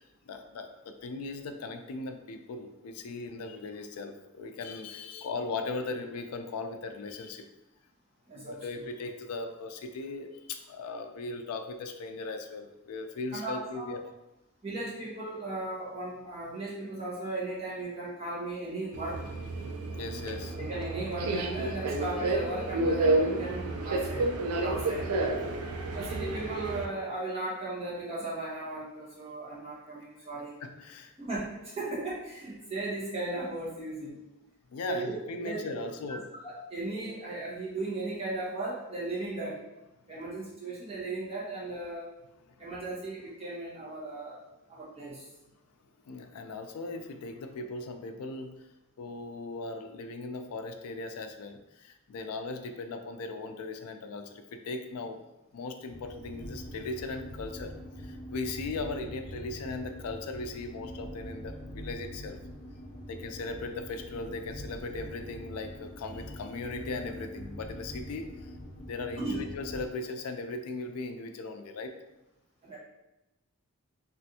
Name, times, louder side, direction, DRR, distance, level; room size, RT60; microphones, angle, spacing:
voice 1, 0.0-7.5 8.3-14.0 19.9-20.6 30.6-31.2 34.7-36.3 42.6-42.7 46.0-48.7 49.0-55.2 55.5-62.4 63.1-68.5 68.8-71.9, left 3 dB, 85° left, 6 dB, 0.4 m, -38 dB
voice 2, 8.3-8.7 13.3-14.0 14.6-19.4 20.6-24.3 24.6-25.1 25.9-30.6 31.2-34.2 34.9-35.9 36.4-39.6 40.1-42.1 42.6-44.4 44.7-45.2 69.2-69.4 72.6-72.8, right 2 dB, 25° right, -8 dB, 1.0 m, -36 dB
Subway metro underground, 18.9-26.9, right 2 dB, 85° right, 0.4 m, -30 dB
sound 1, 55.9-69.9, equal, 35° left, 1.2 m, -43 dB
3.3 x 2.5 x 2.7 m, 0.96 s
head